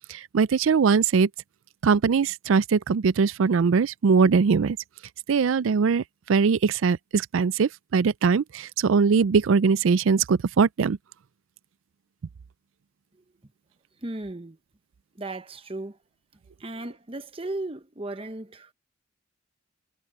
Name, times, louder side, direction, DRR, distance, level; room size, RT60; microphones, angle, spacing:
voice 1, 0.1-1.3 1.8-4.8 5.3-11.0, right 5 dB, 75° right, 0.4 m, -21 dB
voice 2, 14.0-14.6 15.1-16.0 16.6-18.7, right 2 dB, 25° right, 1.0 m, -35 dB
head